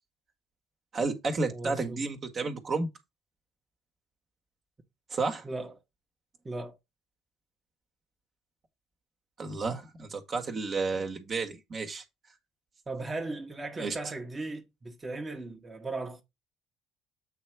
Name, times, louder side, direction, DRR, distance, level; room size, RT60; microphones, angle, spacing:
voice 1, 0.9-2.9 5.1-5.5 9.4-12.0 13.8-13.9, right 3 dB, 45° right, 1.6 m, -31 dB
voice 2, 1.5-2.0 5.4-5.7 6.4-6.8 12.9-16.2, right 2 dB, 25° right, 1.4 m, -37 dB
8.2 x 3.3 x 4.8 m
hypercardioid pair, 60°, 0 cm